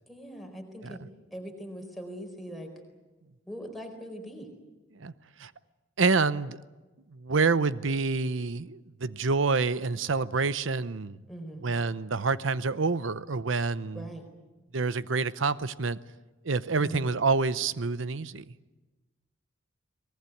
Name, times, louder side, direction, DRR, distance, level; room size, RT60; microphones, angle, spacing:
voice 1, 0.1-1.0 1.3-2.7 3.5-4.5 11.3-11.7 13.9-14.2 16.8-17.1, equal, ahead, 2 dB, 4.4 m, -41 dB
voice 2, 6.0-6.6 7.1-11.2 11.6-14.1 14.7-16.0 16.4-18.5, right 4 dB, 80° right, 15 dB, 0.8 m, -27 dB
23.5 x 19.5 x 9.3 m, 1.2 s
head